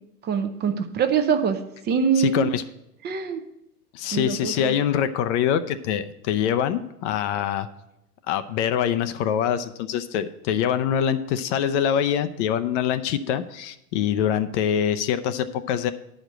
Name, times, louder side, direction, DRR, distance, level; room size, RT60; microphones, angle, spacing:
voice 1, 0.2-1.6 1.8-2.5 3.0-3.4 4.1-4.8, right 6 dB, 20° right, 7 dB, 0.6 m, -24 dB
voice 2, 2.2-2.6 3.9-7.7 8.3-15.9, left 9 dB, 50° left, 10 dB, 0.6 m, -24 dB
9.4 x 5.1 x 7.6 m, 0.85 s
hypercardioid pair, 115°, 47 cm